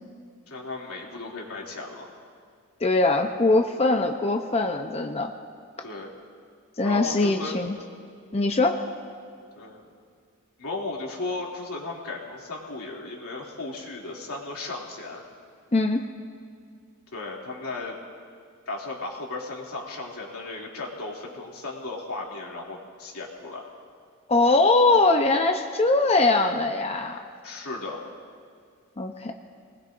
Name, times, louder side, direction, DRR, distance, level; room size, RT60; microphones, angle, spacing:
voice 1, 0.5-2.1 5.8-6.1 6.8-7.5 9.6-9.9 10.6-15.2 17.1-18.0 18.7-23.6 27.4-28.0, left 3 dB, 90° left, -3 dB, 2.7 m, -35 dB
voice 2, 2.8-5.3 6.8-7.7 8.3-8.8 15.7-16.0 24.3-27.2 29.0-29.3, left 2 dB, 30° left, 4 dB, 0.7 m, -22 dB
26.0 x 20.0 x 2.6 m, 2.2 s
head